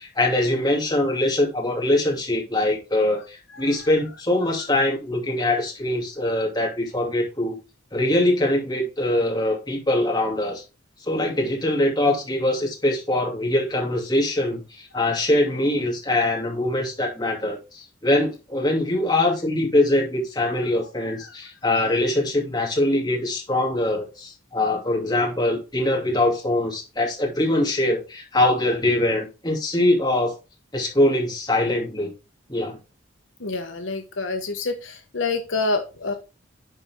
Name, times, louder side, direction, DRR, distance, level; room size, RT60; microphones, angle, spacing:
voice 1, 0.0-7.5 7.9-10.6 11.0-30.4 30.7-32.1 32.5-32.8, left 1 dB, 20° left, -1 dB, 2.6 m, -23 dB
voice 2, 21.0-21.3 33.4-36.1, left 3 dB, 75° left, 5 dB, 1.1 m, -27 dB
10.5 x 4.4 x 3.6 m, 0.29 s
head